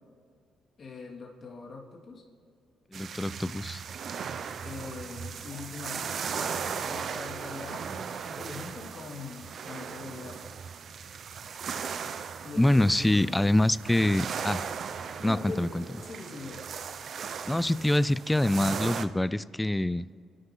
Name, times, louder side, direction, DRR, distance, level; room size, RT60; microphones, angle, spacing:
voice 1, 0.8-2.2 4.6-10.4 12.4-13.6 14.0-14.2 14.9-16.6, left 4 dB, 45° left, -1 dB, 3.1 m, -42 dB
voice 2, 2.9-3.8 12.6-14.6 15.2-15.8 17.5-20.1, left 1 dB, 10° left, 18 dB, 0.4 m, -25 dB
sound 1, 2.9-19.0, right 6 dB, 55° right, 0.7 m, -37 dB
27.5 x 12.0 x 3.9 m, 2.3 s
cardioid pair, 90°, 0 cm